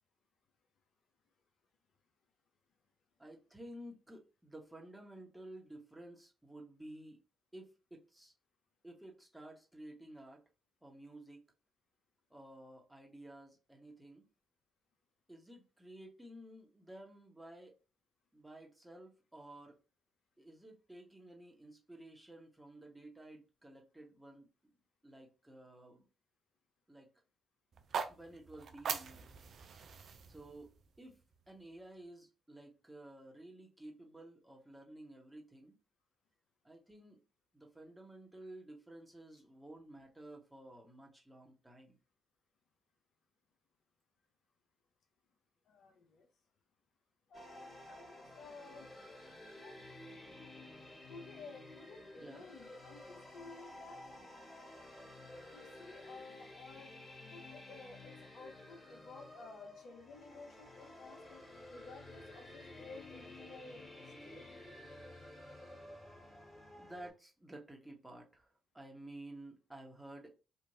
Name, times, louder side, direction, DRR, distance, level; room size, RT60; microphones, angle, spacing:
voice 1, 3.2-7.2 7.5-8.3 8.8-10.4 10.8-11.4 12.3-14.3 15.3-17.7 18.3-19.8 20.4-24.7 25.0-26.1 26.9-27.1 28.1-29.3 30.3-31.2 31.5-35.7 36.6-37.2 37.5-42.0 52.2-52.5 66.8-70.3, right 1 dB, 10° right, 1.2 m, -53 dB
sound 1, 27.7-31.9, right 6 dB, 60° right, 0.4 m, -43 dB
voice 2, 45.7-46.3 47.3-48.9 49.5-49.8 51.0-54.0 55.5-57.0 57.3-64.4, left 3 dB, 65° left, 0.6 m, -54 dB
sound 2, 47.3-67.1, left 1 dB, 30° left, 1.7 m, -53 dB
3.0 x 2.5 x 2.6 m
hypercardioid pair, 45°, 0 cm